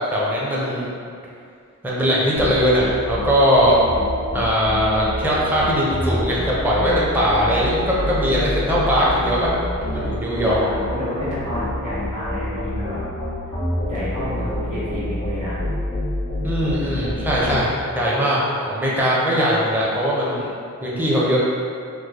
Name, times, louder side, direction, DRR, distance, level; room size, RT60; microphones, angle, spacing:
voice 1, 0.1-0.9 1.8-3.8 4.3-9.5 9.9-10.6 16.4-20.5 20.8-21.4, equal, 5° right, -6 dB, 0.6 m, -20 dB
sound 1, 2.4-17.6, left 1 dB, 60° right, 1.2 m, -27 dB
voice 2, 10.4-13.0 13.8-15.6, left 1 dB, 85° right, -12 dB, 1.4 m, -29 dB
3.1 x 2.1 x 3.6 m, 2.4 s
wide cardioid pair, 50°, 31 cm